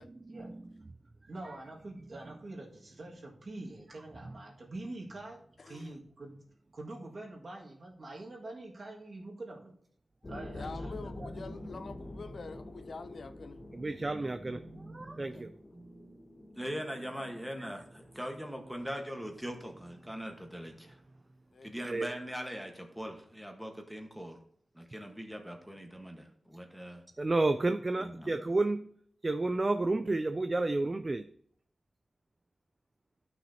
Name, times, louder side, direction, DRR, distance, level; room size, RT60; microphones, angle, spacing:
voice 1, 0.3-0.7 13.7-16.6 17.6-17.7 21.8-22.1 27.2-28.9 29.2-31.3, right 2 dB, 30° right, 0.4 m, -32 dB
voice 2, 1.3-5.4 5.7-6.4 6.7-9.8 10.3-11.3 12.1-12.2, right 2 dB, 50° right, 1.9 m, -45 dB
voice 3, 5.6-5.9 10.5-13.6 15.3-15.4 21.5-21.7, left 4 dB, 65° left, 0.5 m, -46 dB
sound 1, 10.2-20.3, left 1 dB, 30° left, 0.9 m, -47 dB
voice 4, 16.6-21.0 21.6-24.4 24.7-27.0 28.0-28.4, equal, ahead, 1.3 m, -41 dB
12.5 x 6.2 x 2.8 m
wide cardioid pair, 105°, 0 cm